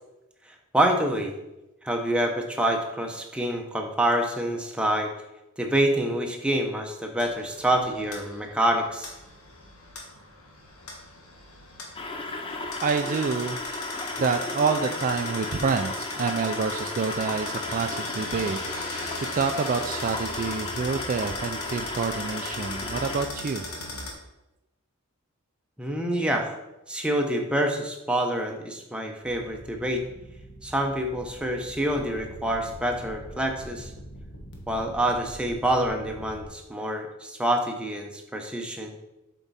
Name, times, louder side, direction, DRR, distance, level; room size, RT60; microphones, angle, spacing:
voice 1, 0.7-1.4 1.8-5.1 5.6-9.1 25.8-26.5 26.9-30.0 30.6-33.9 34.7-38.9, right 1 dB, 5° right, 2 dB, 0.8 m, -26 dB
sound 1, 7.2-24.1, left 2 dB, 85° left, 1.4 m, -39 dB
sound 2, 11.9-23.3, left 3 dB, 25° left, 0.6 m, -35 dB
voice 2, 12.8-13.6 14.2-23.6, right 5 dB, 40° right, 6 dB, 0.3 m, -28 dB
sound 3, 29.2-36.5, equal, 60° left, 1.2 m, -44 dB
7.2 x 4.6 x 4.1 m, 0.95 s
head